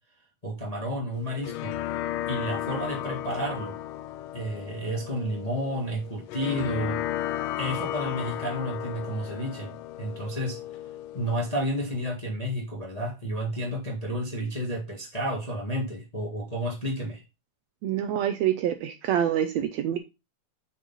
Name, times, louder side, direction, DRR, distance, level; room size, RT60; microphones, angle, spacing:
voice 1, 0.4-1.7 2.3-3.8 4.3-7.0 7.6-10.6 11.1-17.2, equal, 20° left, -1 dB, 1.2 m, -31 dB
sound 1, 1.1-12.1, left 13 dB, 90° left, 2.1 m, -35 dB
voice 2, 17.8-20.0, right 10 dB, 75° right, 8 dB, 1.7 m, -26 dB
6.6 x 6.4 x 3.8 m, 0.25 s
omnidirectional pair, 3.6 m